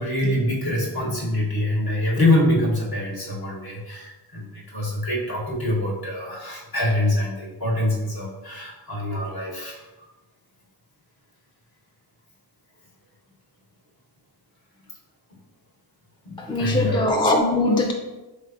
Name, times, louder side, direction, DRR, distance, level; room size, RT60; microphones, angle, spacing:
voice 1, 0.0-10.1 16.2-17.1, left 1 dB, 50° left, -4 dB, 1.2 m, -25 dB
voice 2, 16.4-17.9, left 2 dB, 10° left, 2 dB, 0.3 m, -21 dB
3.4 x 3.3 x 2.4 m, 1.1 s
cardioid pair, 50°, 46 cm